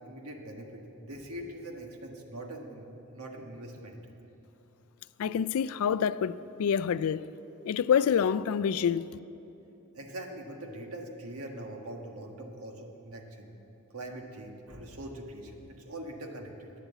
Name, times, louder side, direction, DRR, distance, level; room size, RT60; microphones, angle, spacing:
voice 1, 0.0-4.0 9.9-13.5 13.9-16.7, right 1 dB, 80° right, 1.5 m, -42 dB
voice 2, 5.2-7.3 7.6-9.1, left 7 dB, 70° left, 0.3 m, -27 dB
11.0 x 9.2 x 8.1 m
head